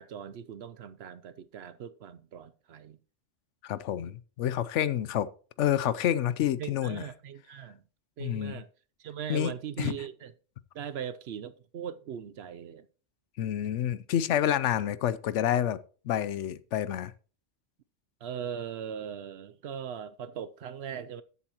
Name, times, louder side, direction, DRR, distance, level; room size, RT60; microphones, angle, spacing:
voice 1, 0.0-3.0 6.6-7.8 8.2-8.7 9.0-10.3 10.7-12.9 18.2-21.2, right 8 dB, 65° right, 0.8 m, -39 dB
voice 2, 3.6-5.3 5.6-7.1 8.2-8.6 9.3-9.5 9.8-9.9 13.4-15.8 16.0-17.1, left 10 dB, 80° left, 0.9 m, -28 dB
13.5 x 8.1 x 2.9 m
omnidirectional pair, 1.2 m